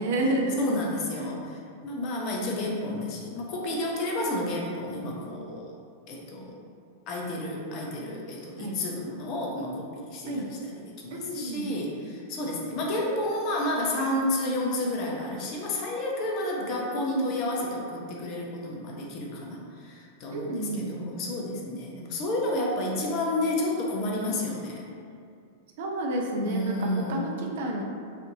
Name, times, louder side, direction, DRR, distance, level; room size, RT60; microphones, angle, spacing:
voice 1, 0.0-0.6 1.2-1.3 8.6-8.8 10.3-10.5 11.1-11.8 16.4-17.3 20.3-21.1 25.8-27.8, right 1 dB, 55° right, 0 dB, 0.5 m, -31 dB
voice 2, 0.6-5.7 6.1-6.5 7.1-24.8 26.4-27.3, left 1 dB, 40° left, -2 dB, 0.6 m, -31 dB
4.2 x 2.6 x 2.6 m, 2.3 s
figure-of-eight pair, 95°, 0 cm